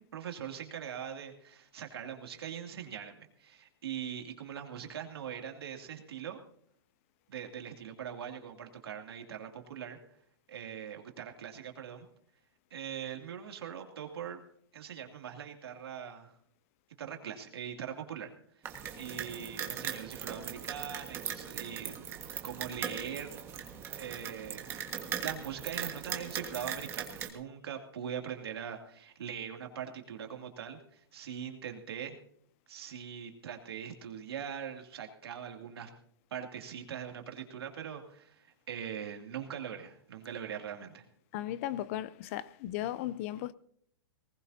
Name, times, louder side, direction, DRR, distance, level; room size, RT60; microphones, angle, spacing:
voice 1, 0.0-6.4 7.3-10.0 10.5-12.1 12.7-14.4 14.7-16.3 17.0-18.3 19.0-22.0 22.4-23.4 24.0-24.8 25.1-32.1 32.7-35.9 36.3-41.0, right 8 dB, 85° right, 2.6 m, -42 dB
sound 1, 18.6-27.3, right 8 dB, 20° right, 1.6 m, -39 dB
voice 2, 41.3-43.5, left 13 dB, 35° left, 0.5 m, -36 dB
19.5 x 19.5 x 2.8 m
hypercardioid pair, 160°, 13 cm